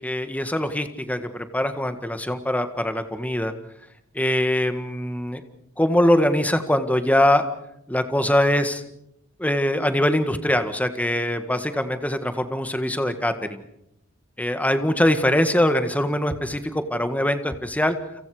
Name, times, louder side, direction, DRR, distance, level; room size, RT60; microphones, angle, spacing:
voice 1, 0.0-3.5 4.1-5.4 5.8-7.4 7.9-8.8 9.4-13.6 14.4-18.0, left 1 dB, 5° left, 8 dB, 1.7 m, -22 dB
30.0 x 27.0 x 5.0 m, 0.80 s
head